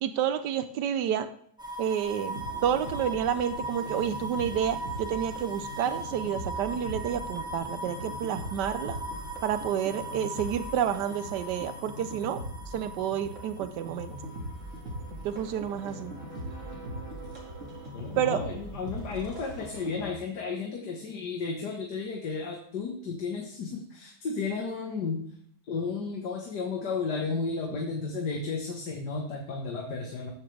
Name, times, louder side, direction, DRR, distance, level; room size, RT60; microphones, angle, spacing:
voice 1, 0.0-1.3 1.8-9.0 9.4-12.4 12.7-14.1 15.2-16.1 18.2-18.4, right 9 dB, 90° right, 10 dB, 1.3 m, -29 dB
sound 1, 1.6-18.5 18.8-19.8, right 1 dB, 5° right, 1.1 m, -40 dB
sound 2, 2.3-20.1, right 1 dB, 45° right, 2.4 m, -41 dB
voice 2, 17.9-25.2 25.7-30.3, left 4 dB, 75° left, 1 dB, 1.9 m, -33 dB
13.0 x 8.3 x 3.4 m, 0.64 s
omnidirectional pair, 1.8 m